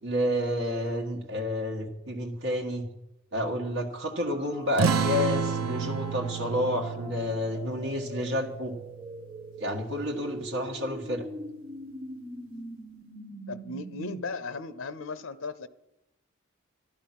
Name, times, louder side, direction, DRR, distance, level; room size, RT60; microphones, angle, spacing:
voice 1, 0.0-2.9 3.3-8.7 9.6-11.3, left 1 dB, 70° right, 1.6 m, -30 dB
sound 1, 3.9-14.2, right 1 dB, 25° right, 1.5 m, -44 dB
sound 2, 4.8-9.8, right 6 dB, 90° right, 0.7 m, -31 dB
voice 2, 13.5-15.7, left 4 dB, 75° left, 0.6 m, -37 dB
12.0 x 12.0 x 5.9 m
head